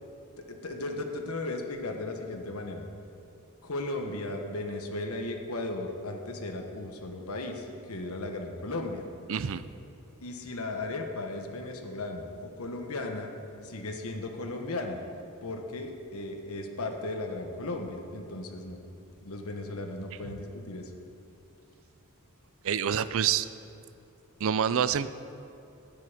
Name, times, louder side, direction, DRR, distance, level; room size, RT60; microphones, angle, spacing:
voice 1, 0.5-2.8 3.6-9.1 10.2-12.3 12.6-13.3 13.6-15.0 15.4-18.8 19.2-20.9, left 2 dB, 75° left, 3 dB, 1.3 m, -36 dB
voice 2, 9.3-9.6 22.6-23.5 24.4-25.1, right 8 dB, 65° right, 14 dB, 0.4 m, -27 dB
13.5 x 9.5 x 5.1 m, 2.7 s
head